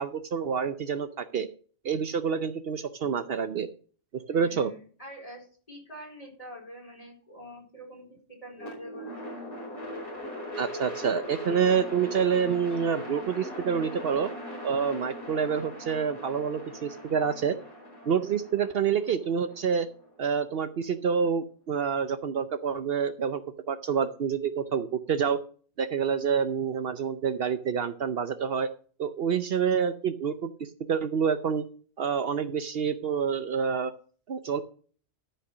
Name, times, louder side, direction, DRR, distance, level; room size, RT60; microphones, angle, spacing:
voice 1, 0.0-1.5 1.8-3.7 4.1-4.7 10.6-14.3 14.6-17.6 18.1-19.9 20.2-23.4 23.7-25.4 25.8-28.7 29.0-31.6 32.0-33.9 34.3-34.6, right 7 dB, 65° right, 10 dB, 0.9 m, -27 dB
voice 2, 4.3-9.3, equal, 35° left, -2 dB, 4.5 m, -46 dB
sound 1, 8.6-20.7, left 1 dB, 55° left, 4.8 m, -40 dB
13.0 x 5.7 x 6.0 m, 0.44 s
omnidirectional pair, 1.1 m